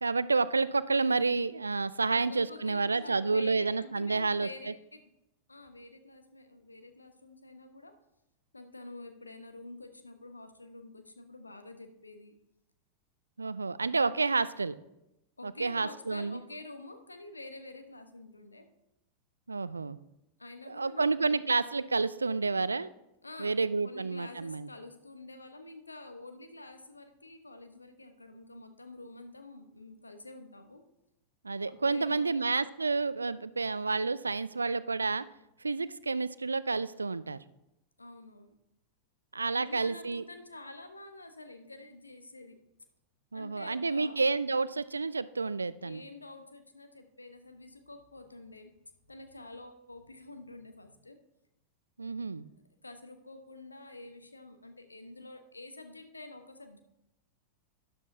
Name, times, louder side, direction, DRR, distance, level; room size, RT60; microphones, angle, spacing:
voice 1, 0.0-4.7 13.4-14.8 15.4-16.4 19.5-20.0 20.7-22.9 23.4-24.7 31.4-35.3 35.6-37.4 39.3-40.2 43.3-46.0 52.0-52.5, right 4 dB, 80° right, 17 dB, 0.4 m, -30 dB
voice 2, 2.1-5.1 5.5-8.0 8.5-12.3 15.4-18.7 20.4-21.4 23.2-23.6 23.8-30.8 31.7-32.5 38.0-38.5 39.6-42.6 43.3-44.2 45.8-48.7 49.1-51.2 52.4-52.5 52.8-56.8, left 2 dB, 80° left, 7 dB, 1.1 m, -48 dB
12.0 x 11.0 x 2.7 m, 0.88 s
figure-of-eight pair, 90°, 0 cm